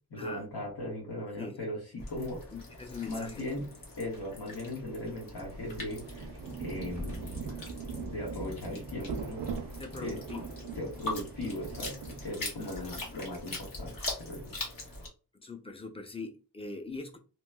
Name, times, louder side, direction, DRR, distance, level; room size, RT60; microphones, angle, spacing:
voice 1, 0.1-2.4 3.0-3.7 4.0-7.4 7.9-9.4 9.9-10.2 10.8-13.9 14.2-14.5, left 1 dB, 85° left, 1.4 m, -38 dB
sound 1, 2.0-15.1, left 2 dB, 60° left, 1.1 m, -43 dB
voice 2, 2.5-3.5 9.8-10.8 12.6-13.2 15.3-17.2, left 4 dB, 15° left, 0.5 m, -42 dB
Slam, 4.0-4.4 5.3-5.5 6.8-8.1, left 1 dB, 35° left, 1.4 m, -46 dB
Rain, 5.5-12.7, right 5 dB, 85° right, 0.6 m, -41 dB
3.0 x 2.9 x 2.2 m
wide cardioid pair, 115°, 38 cm